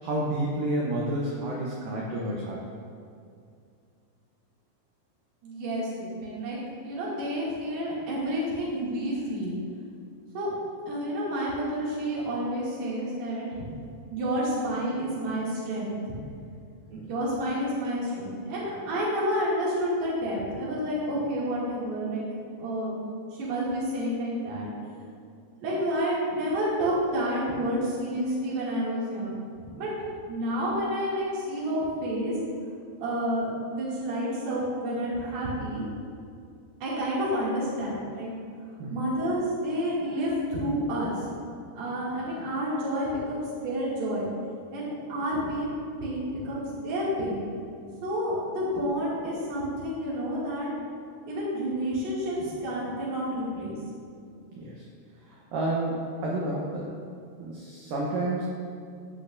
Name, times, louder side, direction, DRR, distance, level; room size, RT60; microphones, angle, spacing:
voice 1, 0.0-2.6 38.8-38.9 54.6-54.8 55.5-56.9 57.4-58.5, right 1 dB, 80° right, -3 dB, 2.0 m, -30 dB
voice 2, 5.4-6.6 6.8-9.6 10.3-10.5 10.9-13.5 14.1-16.1 16.9-22.2 22.6-22.9 23.4-24.7 25.6-29.4 29.8-29.9 30.3-32.3 33.0-35.8 36.8-38.3 38.9-41.2 41.7-44.3 44.7-47.4 48.0-50.7 51.3-53.8, equal, 50° right, -8 dB, 3.1 m, -29 dB
16.5 x 5.9 x 2.6 m, 2.4 s
omnidirectional pair, 5.1 m